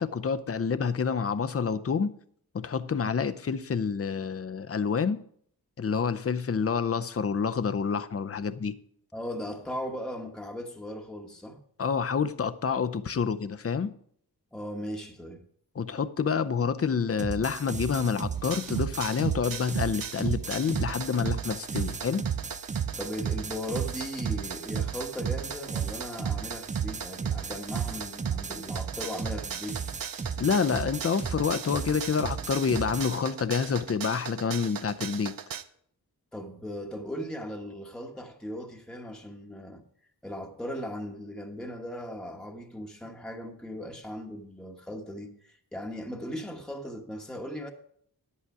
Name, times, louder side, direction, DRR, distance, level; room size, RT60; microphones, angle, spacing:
voice 1, 0.0-2.1 2.5-5.2 5.8-8.7 11.8-13.9 15.8-22.2 30.4-35.3, left 6 dB, 40° left, 0.6 m, -28 dB
voice 2, 9.1-11.6 14.5-15.4 23.0-29.8 36.3-39.8 40.2-47.7, equal, ahead, 1.1 m, -38 dB
sound 1, 17.2-33.2, right 5 dB, 20° right, 0.3 m, -36 dB
sound 2, 18.3-35.6, right 8 dB, 60° right, 0.7 m, -36 dB
10.0 x 8.5 x 4.8 m
wide cardioid pair, 80°, 38 cm